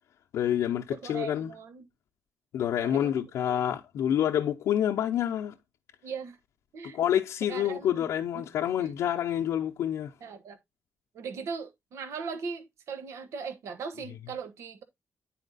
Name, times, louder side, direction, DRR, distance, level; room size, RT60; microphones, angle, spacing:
voice 1, 0.3-1.5 2.5-5.5 6.9-10.1, left 10 dB, 85° left, 0.7 m, -28 dB
voice 2, 0.9-1.9 2.8-3.2 6.0-6.4 6.7-7.0 7.5-8.0 8.8-8.9 10.2-10.6 11.1-14.8, right 5 dB, 80° right, 1.2 m, -39 dB
10.0 x 4.3 x 4.0 m
cardioid pair, 105°, 5 cm